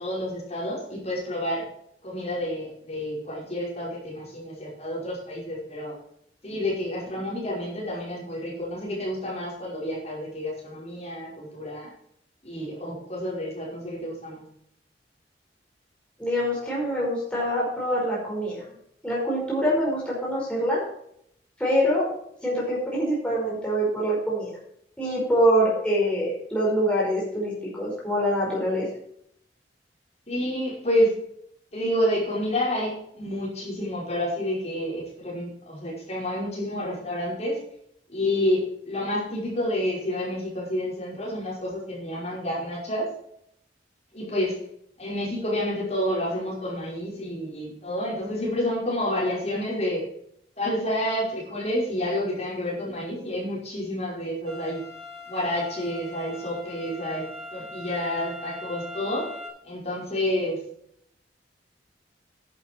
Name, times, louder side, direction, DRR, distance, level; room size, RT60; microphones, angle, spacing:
voice 1, 0.0-1.6 2.0-5.9 6.4-11.9 12.4-14.5 30.3-31.2 31.7-37.6 38.1-43.1 44.1-44.6 45.0-50.0 50.6-54.8 55.3-59.3 59.6-60.6, left 1 dB, 35° left, -5 dB, 5.4 m, -29 dB
voice 2, 16.2-18.7 19.0-20.8 21.6-22.1 22.4-24.5 25.0-28.9, equal, 5° left, -6 dB, 5.3 m, -25 dB
sound 1, 54.5-59.5, left 2 dB, 35° right, 4.8 m, -41 dB
11.0 x 10.5 x 4.6 m, 0.71 s
head